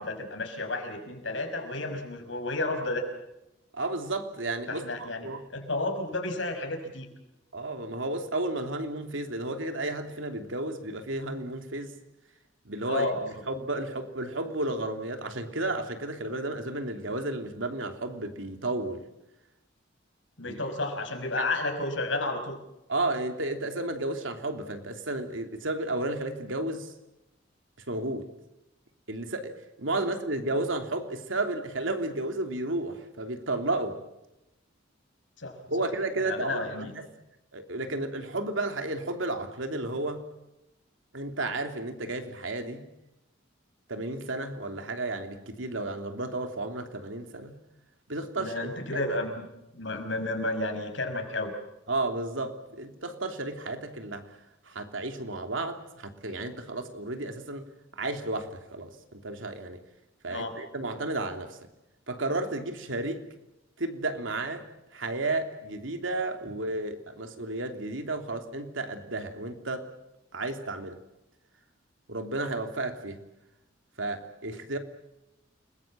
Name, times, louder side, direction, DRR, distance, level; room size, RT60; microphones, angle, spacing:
voice 1, 0.0-3.1 4.7-5.3 5.5-7.1 12.9-13.3 20.4-22.6 35.4-35.9 36.2-36.9 48.4-49.5 49.7-51.5 60.3-60.6, left 2 dB, 75° left, 5 dB, 5.6 m, -32 dB
voice 2, 3.7-5.4 7.5-11.9 12.6-13.1 13.5-19.0 20.4-20.6 22.9-26.9 27.9-28.3 29.1-34.0 35.7-37.0 37.5-40.3 41.1-42.9 43.9-47.6 48.1-49.0 51.9-54.3 54.7-57.7 57.9-59.8 60.2-61.6 62.1-63.2 63.8-64.6 64.9-69.9 70.3-71.0 72.1-73.2 74.0-74.8, right 2 dB, 90° right, 5 dB, 3.1 m, -32 dB
29.5 x 21.0 x 7.5 m, 0.91 s
head